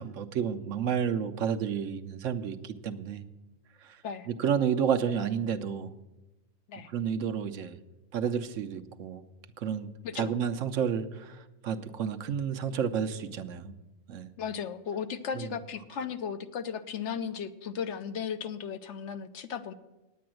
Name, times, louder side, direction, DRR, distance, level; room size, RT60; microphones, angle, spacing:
voice 1, 0.0-3.2 4.4-5.9 6.9-7.7 8.1-9.2 9.6-9.9 10.2-11.4 11.6-13.7 14.1-14.3 15.4-15.5, right 7 dB, 75° right, 9 dB, 1.1 m, -30 dB
voice 2, 14.4-19.7, left 7 dB, 70° left, 10 dB, 1.0 m, -36 dB
9.6 x 9.4 x 7.6 m, 1.0 s
omnidirectional pair, 1.3 m